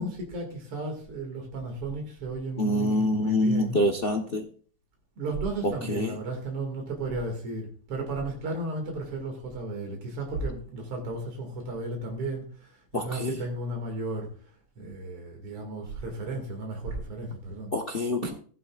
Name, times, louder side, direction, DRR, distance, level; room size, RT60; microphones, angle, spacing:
voice 1, 0.0-3.8 5.2-14.3 14.8-17.7 18.2-18.3, right 2 dB, 80° right, 2 dB, 3.1 m, -34 dB
voice 2, 2.6-4.4 5.9-6.1 12.9-13.3 17.7-18.3, left 1 dB, 70° left, 5 dB, 0.5 m, -26 dB
15.0 x 11.0 x 2.4 m, 0.44 s
omnidirectional pair, 2.4 m